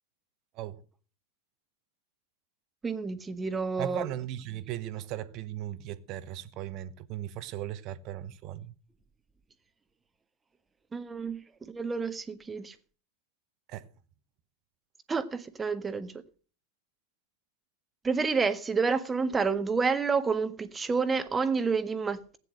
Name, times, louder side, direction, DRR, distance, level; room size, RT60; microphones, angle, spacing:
voice 1, 2.8-4.1 10.9-11.4 11.7-12.7 15.1-16.2 18.0-22.4, right 5 dB, 15° right, 1.5 m, -29 dB
voice 2, 3.8-8.7 13.7-13.9, right 12 dB, 40° right, 1.2 m, -37 dB
15.5 x 9.9 x 6.4 m
figure-of-eight pair, 90°, 0 cm